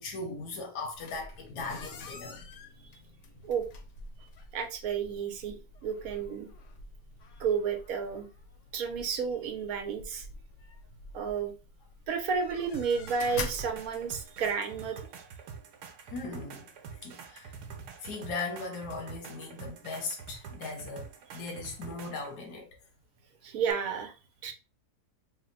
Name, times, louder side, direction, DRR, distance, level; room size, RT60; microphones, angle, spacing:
voice 1, 0.0-2.5 16.1-16.7 17.0-17.5 18.0-21.1 21.3-22.7, left 3 dB, 85° left, 1.4 m, -38 dB
sound 1, 0.9-14.6, left 3 dB, 60° left, 0.9 m, -46 dB
voice 2, 4.5-5.6 5.8-6.5 7.4-8.3 8.7-10.2 11.1-11.5 12.1-15.0 23.4-24.1 24.4-24.5, right 6 dB, 70° right, 1.1 m, -31 dB
sound 2, 12.7-22.3 23.7-23.8, right 6 dB, 90° right, 1.2 m, -46 dB
3.4 x 2.1 x 3.8 m
omnidirectional pair, 1.7 m